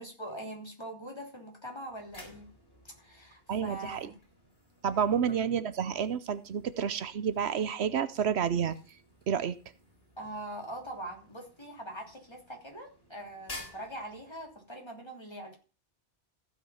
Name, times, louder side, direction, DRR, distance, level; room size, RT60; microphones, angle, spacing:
voice 1, 0.0-2.5 2.8-4.1 5.2-5.4 10.2-15.6, right 1 dB, 25° left, 1 dB, 3.3 m, -43 dB
sound 1, 1.7-14.8, left 2 dB, 65° left, 4.4 m, -53 dB
voice 2, 3.5-4.1 4.8-8.8 9.3-9.6, right 7 dB, 80° right, 13 dB, 1.0 m, -29 dB
15.0 x 6.0 x 5.7 m, 0.35 s
omnidirectional pair, 1.1 m